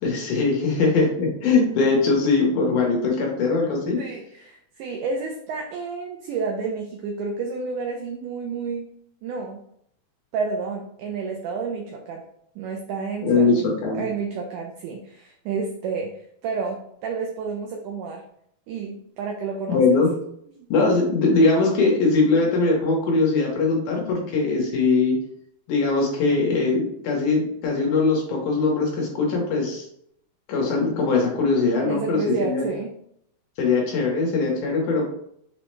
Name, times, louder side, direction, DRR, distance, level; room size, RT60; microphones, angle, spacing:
voice 1, 0.0-4.0 13.2-14.1 19.7-20.1 20.7-25.2 25.7-29.9 30.5-32.7 33.6-35.1, left 3 dB, 70° left, -1 dB, 2.2 m, -21 dB
voice 2, 0.6-1.0 4.0-8.9 9.2-9.6 10.3-12.3 12.5-13.7 14.0-18.2 18.7-20.0 20.6-20.7 31.8-32.9, right 4 dB, 85° right, 2 dB, 1.8 m, -30 dB
5.8 x 2.1 x 3.1 m, 0.71 s
omnidirectional pair, 4.1 m